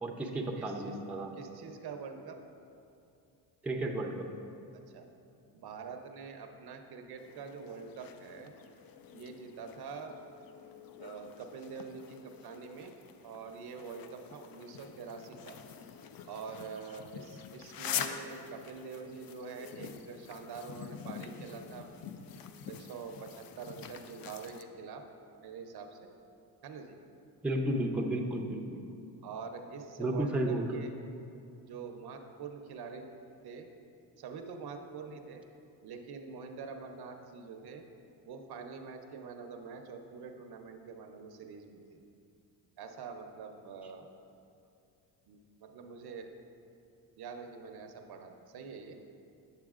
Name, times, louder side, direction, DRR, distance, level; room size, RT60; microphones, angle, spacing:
voice 1, 0.0-1.3 3.6-4.3 27.4-28.8 30.0-30.8, right 1 dB, 5° right, 1 dB, 0.5 m, -33 dB
voice 2, 0.6-1.0 1.4-2.4 4.9-5.1 5.5-8.5 9.1-10.2 11.0-12.9 13.2-15.6 16.2-21.9 22.7-25.1 25.4-26.1 26.6-27.0 29.2-30.9 31.7-33.2 33.4-33.7 34.2-35.4 35.8-37.8 38.2-42.0 42.8-44.1 45.3-46.3 47.2-49.0, right 5 dB, 60° right, 5 dB, 0.7 m, -45 dB
sound 1, 7.2-24.6, left 8 dB, 55° left, 0.5 m, -45 dB
8.9 x 6.6 x 2.4 m, 2.6 s
cardioid pair, 90°, 42 cm